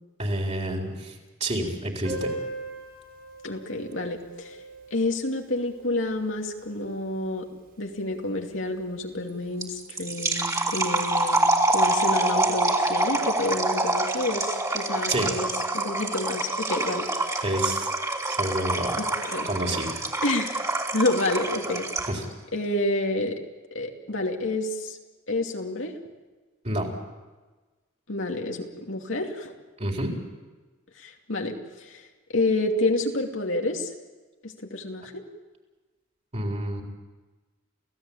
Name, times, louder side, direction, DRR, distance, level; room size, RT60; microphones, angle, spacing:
voice 1, 0.2-2.3 15.1-15.3 17.4-17.9 18.2-19.0 19.4-20.0 22.1-22.2 26.6-26.9 29.8-30.2 36.3-36.8, right 1 dB, 35° right, 1 dB, 4.1 m, -29 dB
Piano, 2.0-7.4 7.7-7.8 8.0-8.1 8.5-8.6 9.3-9.5, right 2 dB, 55° right, 7.4 m, -40 dB
voice 2, 3.4-4.6 4.9-7.5 7.8-17.0 17.3-17.4 19.0-19.5 20.2-20.6 20.9-21.9 22.5-23.4 23.7-25.0 25.3-25.9 28.1-29.5 31.0-32.0 32.3-33.9 34.4-35.2, left 2 dB, 70° left, 2 dB, 2.7 m, -29 dB
sound 1, 9.6-22.2, right 2 dB, 15° right, 3.2 m, -26 dB
28.5 x 17.0 x 8.8 m, 1.3 s
head